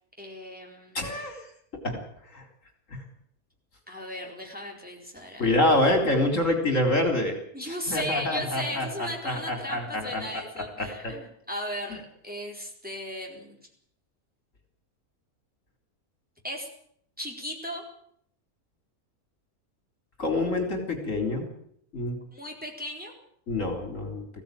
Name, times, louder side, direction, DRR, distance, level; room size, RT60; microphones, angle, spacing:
voice 1, 0.2-1.0 3.9-5.6 7.5-13.6 16.4-16.7 17.2-17.8 22.3-23.1, equal, 5° right, 0 dB, 4.3 m, -36 dB
voice 2, 0.9-1.4 1.8-2.0 2.3-2.4 2.9-3.0 5.4-7.4 7.7-10.3 10.8-11.1 20.2-21.5 21.9-22.2 23.5-24.3, left 1 dB, 55° left, 4 dB, 4.1 m, -26 dB
20.5 x 16.0 x 9.2 m, 0.67 s
omnidirectional pair, 1.6 m